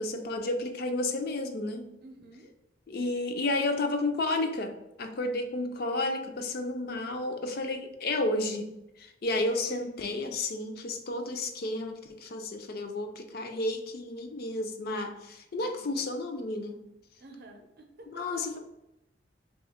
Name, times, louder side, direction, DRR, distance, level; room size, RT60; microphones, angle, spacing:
voice 1, 0.0-1.9 2.9-16.8 18.1-18.6, left 2 dB, 55° left, 5 dB, 0.4 m, -32 dB
voice 2, 2.0-2.5 9.7-9.9 15.6-15.9 17.2-18.5, right 1 dB, 60° right, 3 dB, 0.6 m, -49 dB
3.0 x 2.3 x 4.2 m, 0.87 s
head